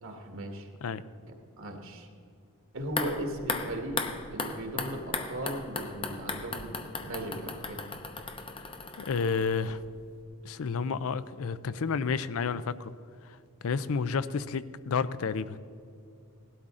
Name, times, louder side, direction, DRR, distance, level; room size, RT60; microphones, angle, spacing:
voice 1, 0.0-0.7 1.3-2.1 2.7-4.0 4.3-7.8, right 1 dB, 65° right, 3 dB, 1.7 m, -37 dB
sound 1, 2.8-9.9 10.2-10.3, left 3 dB, 25° left, 0.8 m, -37 dB
voice 2, 9.0-9.8 10.4-12.9 13.6-15.6, left 5 dB, 70° left, 15 dB, 0.5 m, -30 dB
17.5 x 12.5 x 3.7 m, 2.4 s
head